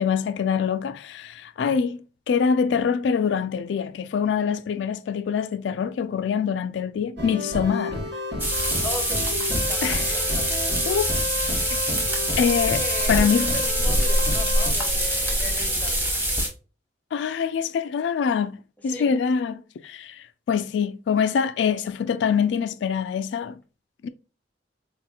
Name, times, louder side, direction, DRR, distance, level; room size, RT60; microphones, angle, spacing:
voice 1, 0.0-2.0 2.3-8.0 9.8-10.1 10.9-11.2 11.7-11.8 12.4-12.8 13.1-13.5 17.1-18.6 18.8-23.6 24.0-24.1, left 6 dB, 85° left, 0.3 m, -24 dB
sound 1, 7.2-14.7, left 2 dB, 80° right, 1.2 m, -31 dB
sound 2, 8.4-16.5, right 1 dB, 10° right, 0.9 m, -24 dB
voice 2, 8.8-10.5 12.8-16.1 18.8-19.2, left 1 dB, 10° left, 0.5 m, -37 dB
4.0 x 2.9 x 2.3 m
head